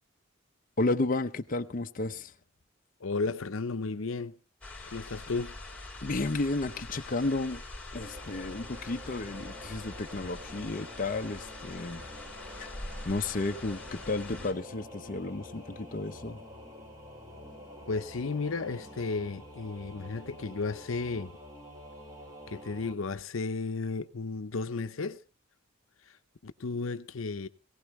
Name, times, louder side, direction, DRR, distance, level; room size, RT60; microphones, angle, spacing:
voice 1, 0.8-2.3 4.8-4.9 6.0-7.6 7.9-12.0 13.1-16.4, left 2 dB, 40° left, 0.7 m, -32 dB
voice 2, 3.0-4.3 4.9-5.6 17.9-21.3 22.5-25.2 26.4-27.5, left 4 dB, 75° left, 0.7 m, -33 dB
sound 1, 4.6-14.5, left 2 dB, 5° left, 3.6 m, -44 dB
Singing / Musical instrument, 7.9-23.0, left 1 dB, 20° right, 3.9 m, -48 dB
19.0 x 17.0 x 3.1 m
head